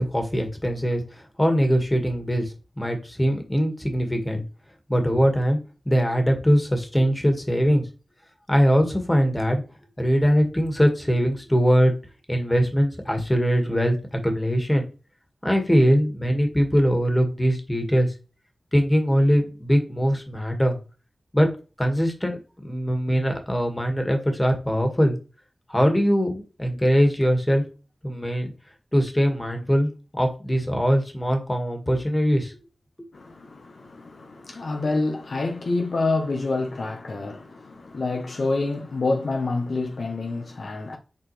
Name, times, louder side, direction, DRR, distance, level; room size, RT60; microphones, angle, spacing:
voice 1, 0.0-4.4 4.9-5.6 5.9-7.8 8.5-9.6 10.0-11.9 12.3-14.0 14.2-14.9 15.4-18.1 18.7-20.8 21.3-21.5 21.8-25.2 25.7-27.6 28.0-28.5 28.9-32.6, equal, 15° left, 1.9 m, -22 dB
voice 2, 33.1-41.0, left 3 dB, 70° left, 1.0 m, -27 dB
7.1 x 4.1 x 3.3 m
cardioid pair, 55°, 0 cm